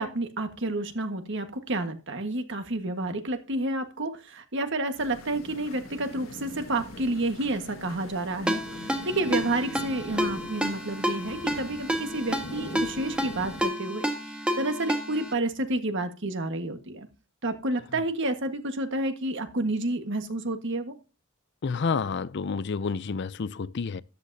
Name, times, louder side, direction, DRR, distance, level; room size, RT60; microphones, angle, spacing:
voice 1, 0.0-17.1 17.4-20.9, right 2 dB, 55° right, 1.5 m, -30 dB
sound 1, 5.0-13.7, left 2 dB, 70° left, 1.8 m, -42 dB
Ringtone, 8.5-15.3, equal, 5° right, 1.5 m, -30 dB
voice 2, 21.6-24.0, left 5 dB, 55° left, 0.5 m, -29 dB
13.5 x 10.0 x 2.7 m
head